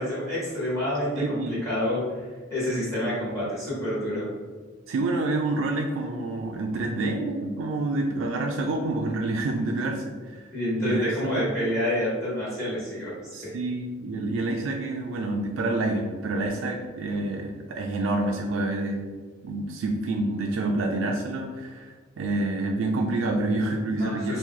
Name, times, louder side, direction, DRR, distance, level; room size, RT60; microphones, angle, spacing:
voice 1, 0.0-4.3 10.5-13.5 23.9-24.4, left 1 dB, 15° left, -9 dB, 1.4 m, -28 dB
voice 2, 1.2-1.6 4.9-10.5 10.8-11.1 11.4-11.5 13.3-19.1 19.4-24.4, right 2 dB, 85° right, 1 dB, 0.4 m, -28 dB
3.0 x 2.7 x 3.7 m, 1.5 s
head